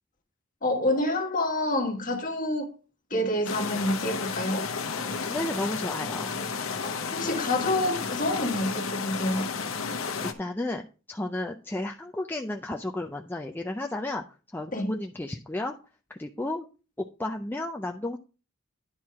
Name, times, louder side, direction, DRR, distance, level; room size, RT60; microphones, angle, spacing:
voice 1, 0.6-2.7 3.1-4.7 5.0-5.2 6.8-9.5 14.7-14.9, left 1 dB, 40° left, 1.6 m, -28 dB
sound 1, 3.4-10.3, left 5 dB, 70° left, 0.9 m, -32 dB
voice 2, 5.3-6.3 10.2-14.2 14.5-15.7 16.1-16.7 17.2-18.2, left 1 dB, 10° left, 0.4 m, -33 dB
10.5 x 4.5 x 4.7 m
head